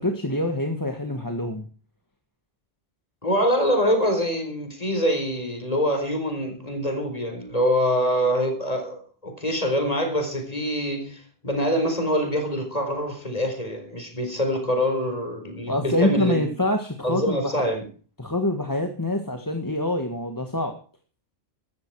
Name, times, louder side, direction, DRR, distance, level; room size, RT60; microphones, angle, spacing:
voice 1, 0.0-1.7 15.7-17.7 18.2-20.8, left 1 dB, 20° left, 1.7 m, -25 dB
voice 2, 3.2-16.5 17.0-17.8, equal, 40° left, 4.4 m, -25 dB
15.5 x 14.0 x 4.8 m
omnidirectional pair, 1.0 m